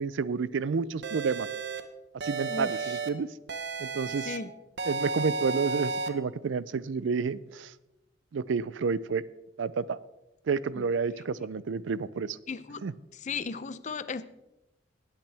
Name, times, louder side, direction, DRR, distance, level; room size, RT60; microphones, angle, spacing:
voice 1, 0.0-1.5 2.2-3.3 3.8-4.4 4.9-7.7 8.3-9.2 9.6-10.0 10.5-12.4 12.8-12.9, right 5 dB, 85° right, 18 dB, 0.4 m, -30 dB
sound 1, 1.0-1.8 2.2-3.1 3.5-4.4 4.8-6.1, right 3 dB, 60° right, 0.9 m, -33 dB
voice 2, 2.5-3.0 4.2-4.5 10.7-10.9 12.5-12.9 13.1-14.2, left 5 dB, 40° left, 15 dB, 0.5 m, -36 dB
18.5 x 8.9 x 3.4 m, 0.96 s
head